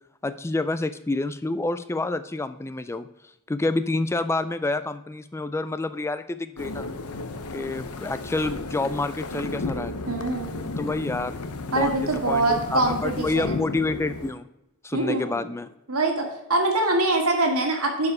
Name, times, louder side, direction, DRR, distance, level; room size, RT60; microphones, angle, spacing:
voice 1, 0.2-3.1 3.5-6.8 7.5-9.9 10.8-11.3 11.7-14.5 14.8-15.7, left 2 dB, 10° left, 13 dB, 0.3 m, -28 dB
sound 1, 6.6-14.3, left 3 dB, 90° left, 0.8 m, -33 dB
voice 2, 10.1-10.6 11.7-13.6 14.9-15.4 15.9-18.1, right 2 dB, 80° right, 2 dB, 2.0 m, -24 dB
11.0 x 4.9 x 4.8 m, 0.87 s
head